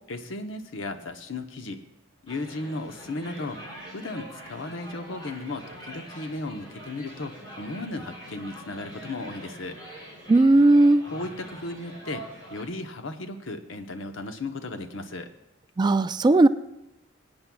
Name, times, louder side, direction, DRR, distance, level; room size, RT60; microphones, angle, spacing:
voice 1, 0.1-1.8 2.3-3.6 3.9-9.8 11.1-12.2 12.5-15.3, left 2 dB, 75° left, 7 dB, 0.9 m, -35 dB
sound 1, 2.3-12.6, right 1 dB, 25° left, 3.2 m, -44 dB
voice 2, 10.3-11.0 15.8-16.5, right 2 dB, 20° right, 12 dB, 0.3 m, -17 dB
23.0 x 8.8 x 2.3 m, 0.90 s
head